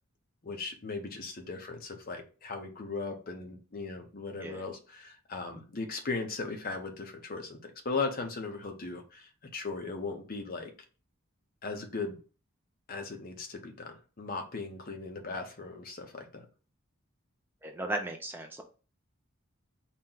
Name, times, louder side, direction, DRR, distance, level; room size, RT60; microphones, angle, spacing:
voice 1, 0.4-10.7 11.6-12.2 12.9-16.5, left 3 dB, 45° left, 4 dB, 0.7 m, -38 dB
voice 2, 17.6-18.6, right 1 dB, 10° right, 2 dB, 0.3 m, -36 dB
4.2 x 2.1 x 3.8 m, 0.36 s
head